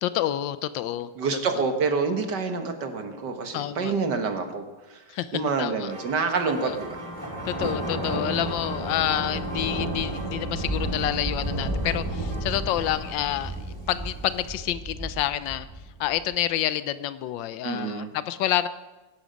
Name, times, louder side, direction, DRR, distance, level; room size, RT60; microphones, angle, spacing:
voice 1, 0.0-1.1 3.5-3.9 5.1-5.9 6.6-6.8 7.5-13.5 13.9-15.7 16.0-18.7, left 12 dB, 85° left, 14 dB, 1.4 m, -28 dB
voice 2, 1.2-5.0 5.3-7.0 17.6-18.1, right 4 dB, 65° right, 6 dB, 2.1 m, -27 dB
sound 1, 5.9-13.1, right 1 dB, 50° right, 3.3 m, -43 dB
Thunder, 6.5-16.3, right 1 dB, 10° right, 4.6 m, -32 dB
Bowed string instrument, 7.1-12.2, right 2 dB, 20° left, 2.0 m, -38 dB
22.0 x 11.0 x 5.2 m, 1.2 s
omnidirectional pair, 2.0 m